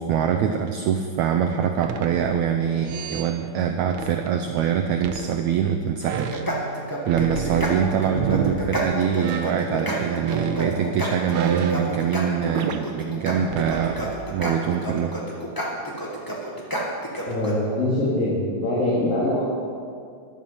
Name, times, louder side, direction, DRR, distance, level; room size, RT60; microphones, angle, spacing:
voice 1, 0.0-6.3 6.6-6.7 7.1-15.2, right 8 dB, 90° right, 6 dB, 1.6 m, -24 dB
sound 1, 1.8-2.5 2.9-3.3 3.9-4.4 5.0-5.7 6.0-8.6 9.2-9.7 10.2-12.8 13.4-14.1, right 7 dB, 70° right, 1.7 m, -31 dB
sound 2, 6.1-17.5, equal, 10° left, 0.9 m, -30 dB
voice 2, 17.3-19.4, left 1 dB, 75° left, -7 dB, 4.3 m, -23 dB
14.0 x 12.0 x 5.8 m, 2.3 s
omnidirectional pair, 4.1 m